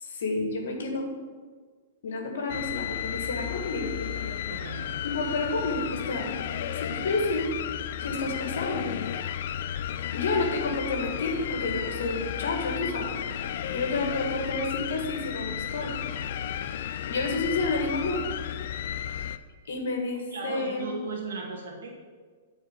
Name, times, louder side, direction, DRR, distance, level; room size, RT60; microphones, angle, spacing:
voice 1, 0.0-1.1 2.0-4.4 4.7-7.5 8.0-8.9 10.1-13.1 13.4-15.9 17.1-18.2 19.1-19.2 19.7-20.9, left 3 dB, 80° left, 2 dB, 1.8 m, -30 dB
sound 1, 2.5-19.4, left 10 dB, 55° left, 0.4 m, -33 dB
voice 2, 4.5-4.9 13.7-13.9 20.3-21.9, right 3 dB, 90° right, -1 dB, 1.8 m, -36 dB
9.1 x 4.5 x 7.4 m, 1.5 s
hypercardioid pair, 155°, 0 cm